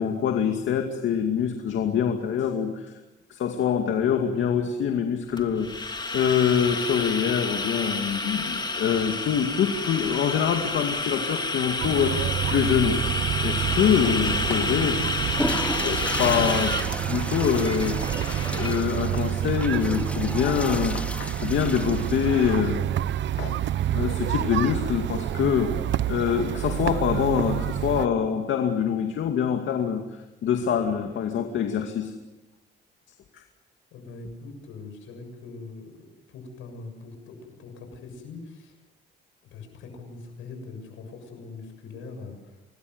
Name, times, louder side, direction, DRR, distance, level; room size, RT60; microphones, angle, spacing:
voice 1, 0.0-2.9 3.3-5.8 6.1-13.0 13.4-15.0 15.8-16.8 17.1-18.0 18.5-22.8 23.4-23.6 23.9-25.7 26.1-30.0 30.4-32.1 33.3-33.4, left 8 dB, 75° left, 4 dB, 2.4 m, -25 dB
sound 1, 5.4-18.8, left 3 dB, 20° left, 3.1 m, -30 dB
sound 2, 11.8-28.1, right 11 dB, 70° right, 0.9 m, -28 dB
Water / Toilet flush, 14.4-22.7, left 1 dB, 5° left, 2.0 m, -34 dB
voice 2, 33.9-38.8 39.5-42.6, left 3 dB, 90° left, 5 dB, 7.2 m, -42 dB
26.0 x 20.0 x 8.0 m, 1.1 s
cardioid pair, 90°, 20 cm